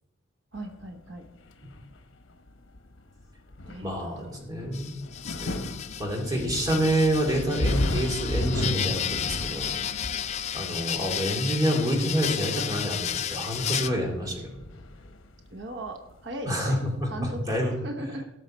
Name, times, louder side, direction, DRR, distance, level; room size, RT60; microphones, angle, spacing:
sound 1, 0.5-16.5 16.7-17.4, left 1 dB, 85° left, 1.0 m, -35 dB
voice 1, 0.5-1.2 3.7-4.5 15.5-16.8 17.1-18.3, right 1 dB, 60° right, 6 dB, 1.0 m, -38 dB
voice 2, 3.8-4.9 5.4-5.7 6.0-9.8 10.5-14.6 16.5-17.7, equal, 20° right, 0 dB, 2.4 m, -27 dB
sound 2, 4.7-13.9, left 10 dB, 35° left, 0.3 m, -33 dB
17.5 x 6.5 x 4.3 m, 0.97 s
head